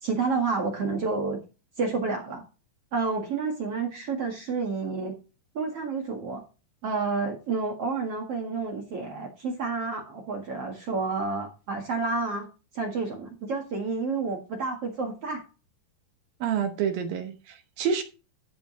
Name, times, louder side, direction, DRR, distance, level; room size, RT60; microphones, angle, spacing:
voice 1, 0.0-1.4 1.8-2.4 2.9-5.2 5.5-6.4 6.8-12.5 12.7-15.4, right 4 dB, 55° right, 1.8 m, -29 dB
voice 2, 16.4-18.0, right 7 dB, 70° right, 2.2 m, -28 dB
13.0 x 5.2 x 5.0 m
omnidirectional pair, 5.3 m